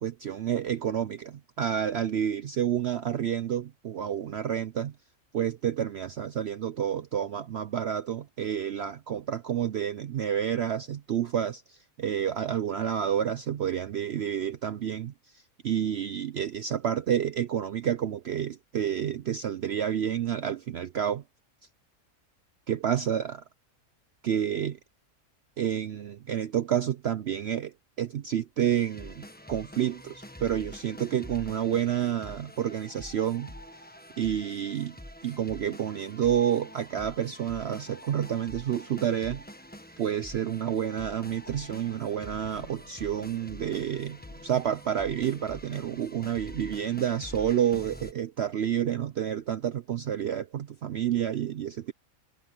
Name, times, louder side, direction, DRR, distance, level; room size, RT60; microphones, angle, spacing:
voice 1, 0.0-4.9 5.3-15.1 15.6-21.2 22.7-23.4 24.2-24.7 25.6-27.7 28.0-33.5 34.2-35.0 35.2-39.4 40.0-51.9, right 9 dB, 60° right, 0.8 m, -29 dB
sound 1, 28.6-48.1, left 1 dB, 5° left, 1.2 m, -46 dB
Thunder, 40.3-46.4, left 3 dB, 80° left, 2.6 m, -56 dB
omnidirectional pair, 1.5 m